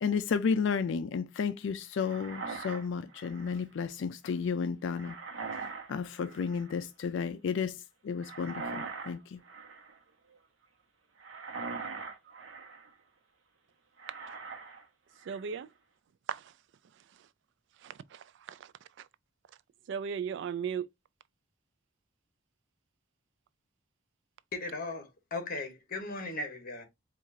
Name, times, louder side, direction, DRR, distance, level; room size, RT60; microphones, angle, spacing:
voice 1, 0.0-5.2 5.9-9.4, left 6 dB, 65° left, 0.4 m, -32 dB
sound 1, 2.0-3.6 4.9-5.9 6.2-6.7 8.2-9.2 9.4-10.0 11.2-12.9 14.0-14.8 15.2-15.6, right 4 dB, 85° right, 0.9 m, -42 dB
voice 2, 15.3-15.7 16.3-16.4 17.8-18.6 19.9-20.9, right 7 dB, 65° right, 0.3 m, -36 dB
voice 3, 24.5-26.9, left 2 dB, 50° left, 1.1 m, -37 dB
4.7 x 2.4 x 2.6 m
head